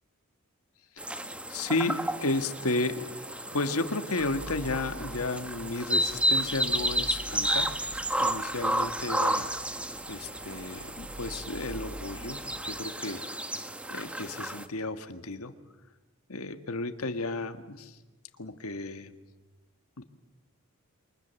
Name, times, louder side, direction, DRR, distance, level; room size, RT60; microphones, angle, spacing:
sound 1, 1.0-14.7, right 1 dB, 5° right, 0.9 m, -32 dB
voice 1, 1.2-3.3 3.5-7.7 8.2-9.5 10.1-13.2 13.9-15.5 16.3-18.0 18.4-19.1 20.0-20.1, left 2 dB, 85° left, 8 dB, 1.6 m, -33 dB
sound 2, 4.2-12.6, right 1 dB, 35° right, 3.7 m, -46 dB
28.5 x 24.5 x 7.1 m, 1.2 s
head